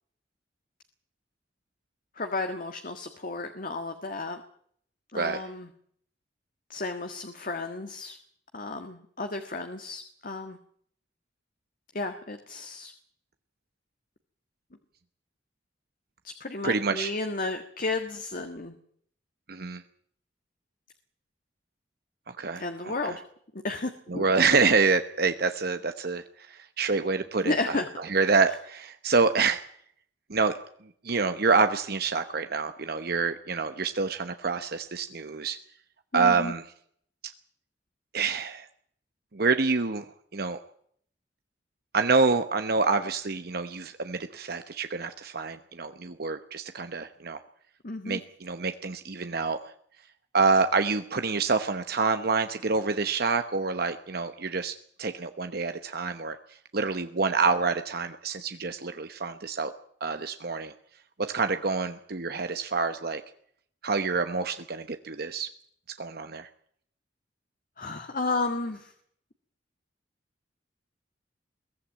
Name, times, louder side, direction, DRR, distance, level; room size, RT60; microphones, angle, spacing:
voice 1, 2.1-4.4 5.1-5.7 6.7-8.2 8.5-10.6 11.9-12.9 16.2-18.8 22.6-23.2 23.5-24.2 27.4-27.9 36.1-36.5 47.8-48.2 67.8-68.9, left 3 dB, 50° left, 6 dB, 1.6 m, -33 dB
voice 2, 16.6-17.1 19.5-19.8 22.3-23.1 24.1-27.6 28.1-29.6 30.3-30.5 31.0-35.6 36.1-36.6 38.1-38.7 39.3-40.1 40.3-40.6 41.9-47.4 48.0-49.6 50.3-56.4 56.7-59.7 60.0-60.7 61.2-63.2 63.8-65.5 66.0-66.5, right 4 dB, 60° right, 8 dB, 1.0 m, -27 dB
22.5 x 14.5 x 8.8 m, 0.64 s
head